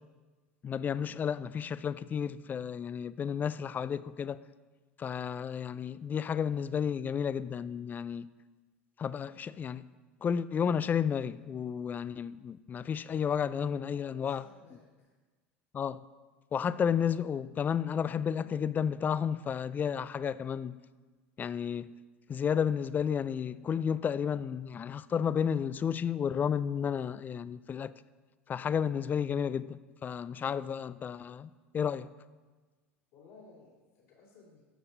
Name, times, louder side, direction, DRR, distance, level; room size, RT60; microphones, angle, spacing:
voice 1, 0.6-4.4 5.0-8.3 9.0-9.9 10.2-14.5 15.7-16.0 16.5-20.8 21.4-21.9 22.3-27.9 28.5-32.1, left 7 dB, 30° left, 0.4 m, -32 dB
voice 2, 13.9-15.1 33.1-34.6, left 4 dB, 65° left, 2.7 m, -57 dB
12.0 x 7.0 x 4.0 m
hypercardioid pair, 85°, 6 cm